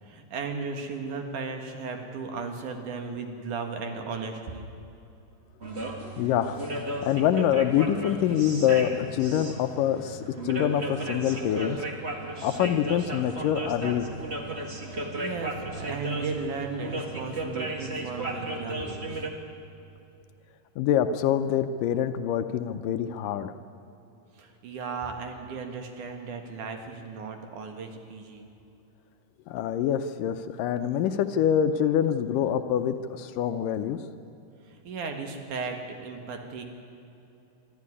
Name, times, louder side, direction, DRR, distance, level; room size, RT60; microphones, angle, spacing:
voice 1, 0.0-4.7 14.8-19.3 24.3-28.5 34.6-36.6, right 4 dB, 65° right, 5 dB, 3.0 m, -36 dB
sound 1, 5.6-19.3, right 2 dB, 35° right, 1.1 m, -35 dB
voice 2, 6.2-6.6 7.0-11.8 12.4-14.1 20.8-23.6 29.5-34.0, left 10 dB, 75° left, 10 dB, 2.3 m, -25 dB
23.5 x 13.0 x 9.8 m, 2.9 s
omnidirectional pair, 4.0 m